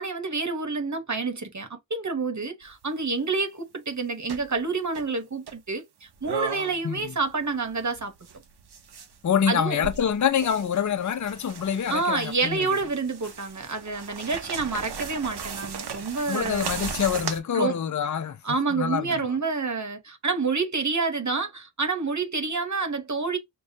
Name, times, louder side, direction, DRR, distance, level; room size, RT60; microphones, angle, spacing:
voice 1, 0.0-8.1 9.5-9.8 11.9-16.9 17.5-17.8 18.4-23.4, right 4 dB, 50° right, 1.0 m, -28 dB
sound 1, 2.6-2.8 4.3-4.6 4.9-5.0 5.5-5.6 6.2-7.0 7.3-9.2 9.7-17.4, right 6 dB, 90° right, 0.7 m, -36 dB
voice 2, 9.2-12.7 16.3-18.4 18.7-19.2, left 8 dB, 50° left, 0.5 m, -26 dB
6.6 x 2.2 x 2.7 m
wide cardioid pair, 80°, 38 cm